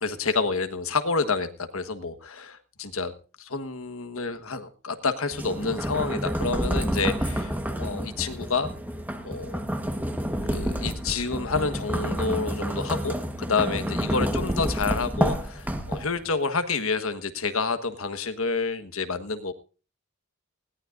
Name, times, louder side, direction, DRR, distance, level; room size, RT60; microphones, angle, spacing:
voice 1, 0.0-3.1 3.4-8.7 9.2-9.6 10.5-19.5, left 4 dB, 70° left, 9 dB, 1.4 m, -29 dB
sound 1, 5.3-16.3, equal, 10° right, 1.3 m, -29 dB
20.0 x 17.5 x 2.6 m, 0.36 s
head